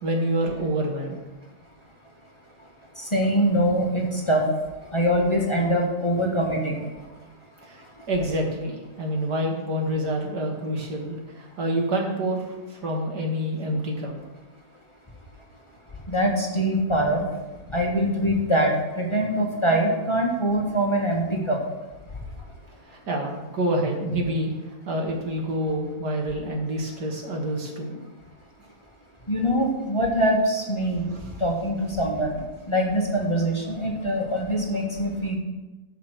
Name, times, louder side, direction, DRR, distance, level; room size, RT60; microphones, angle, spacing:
voice 1, 0.0-1.2 7.6-7.8 8.1-14.1 22.9-24.5 24.9-28.0 31.1-31.3, right 1 dB, 85° right, 0 dB, 2.5 m, -27 dB
voice 2, 3.0-4.4 4.9-6.8 16.1-17.2 17.7-21.6 29.3-31.0 31.4-35.4, equal, 20° left, -1 dB, 1.6 m, -23 dB
12.5 x 5.6 x 6.5 m, 1.1 s
omnidirectional pair, 1.7 m